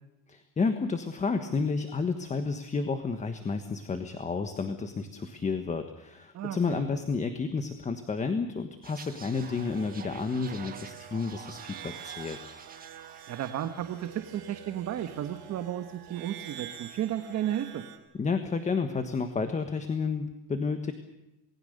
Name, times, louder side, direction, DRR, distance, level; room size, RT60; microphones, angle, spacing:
voice 1, 0.3-12.5 18.1-20.9, left 4 dB, 15° left, 8 dB, 1.3 m, -31 dB
voice 2, 6.3-6.8 13.3-17.8, right 11 dB, 35° right, 8 dB, 1.5 m, -33 dB
sound 1, 8.8-14.6 14.8-15.1, right 6 dB, 20° right, 1.7 m, -49 dB
sound 2, 9.3-18.0, right 10 dB, 50° right, 4.3 m, -47 dB
28.5 x 20.0 x 6.7 m, 0.97 s
cardioid pair, 165°, 48 cm